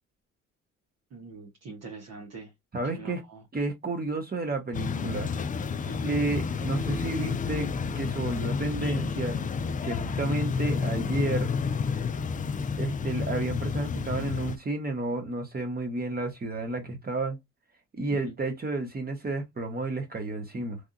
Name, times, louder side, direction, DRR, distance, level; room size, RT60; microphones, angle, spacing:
voice 1, 1.1-2.5 2.9-3.1 5.8-6.2 18.1-18.3, right 4 dB, 60° right, 1.2 m, -43 dB
voice 2, 2.7-3.2 3.5-5.3 6.0-7.7 7.9-9.4 9.8-11.5 12.6-17.4 17.9-20.8, right 2 dB, 30° right, 1.3 m, -31 dB
sound 1, 4.7-14.6, left 5 dB, 25° left, 0.4 m, -30 dB
3.4 x 2.7 x 2.4 m
cardioid pair, 90°, 30 cm